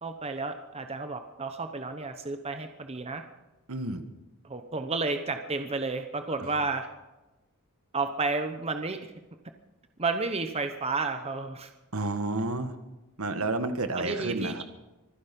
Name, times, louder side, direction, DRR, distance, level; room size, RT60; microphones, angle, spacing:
voice 1, 0.0-3.2 4.4-6.9 7.9-9.1 10.0-11.7 13.9-14.6, right 3 dB, 30° right, 7 dB, 1.0 m, -31 dB
voice 2, 3.7-4.1 6.4-6.6 11.9-12.8 13.2-14.6, right 2 dB, 75° right, 9 dB, 1.5 m, -31 dB
25.0 x 10.5 x 5.3 m, 1.0 s
head